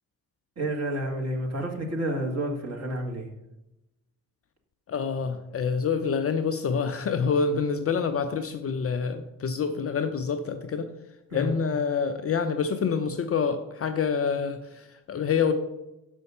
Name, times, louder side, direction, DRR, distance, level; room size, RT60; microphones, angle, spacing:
voice 1, 0.6-3.3 11.3-11.6, right 1 dB, 35° right, 1 dB, 1.7 m, -30 dB
voice 2, 4.9-10.9 11.3-15.5, left 6 dB, 30° left, 8 dB, 0.6 m, -27 dB
6.3 x 5.3 x 5.7 m, 0.96 s
figure-of-eight pair, 40°, 46 cm